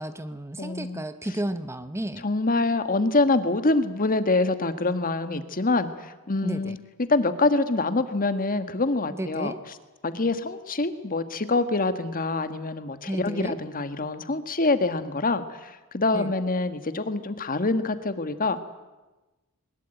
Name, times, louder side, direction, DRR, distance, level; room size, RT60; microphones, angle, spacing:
voice 1, 0.0-2.2 6.4-6.8 9.2-9.6 13.1-13.6 16.1-16.3, right 1 dB, 10° right, 11 dB, 0.8 m, -32 dB
voice 2, 0.6-1.0 2.2-9.5 10.0-18.6, left 2 dB, 40° left, 10 dB, 1.6 m, -25 dB
22.0 x 20.5 x 9.1 m, 1.1 s
head